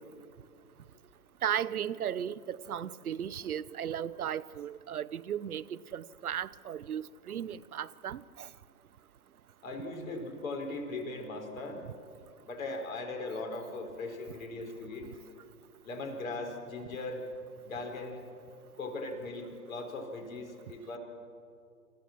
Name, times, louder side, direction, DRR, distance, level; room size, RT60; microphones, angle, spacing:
voice 1, 1.4-8.5, right 9 dB, 70° right, 0.8 m, -36 dB
voice 2, 9.6-11.8 12.5-15.1 15.8-17.2 17.6-18.2 18.8-21.0, left 2 dB, 60° left, 4.5 m, -39 dB
28.0 x 15.0 x 7.3 m
figure-of-eight pair, 115°, 46 cm